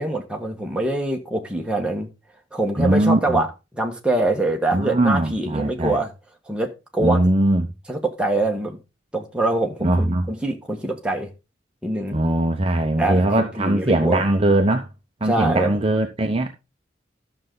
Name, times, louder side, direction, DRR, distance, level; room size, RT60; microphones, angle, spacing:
voice 1, 0.0-2.1 2.5-6.1 6.5-7.3 7.9-8.8 9.1-11.3 11.8-12.2 13.0-14.2 15.2-15.8, right 2 dB, 5° right, 1.4 m, -24 dB
voice 2, 2.8-3.4 4.7-6.0 7.0-7.7 9.8-10.3 12.1-14.9 15.2-16.5, right 1 dB, 30° right, 0.8 m, -20 dB
12.0 x 6.6 x 3.8 m
head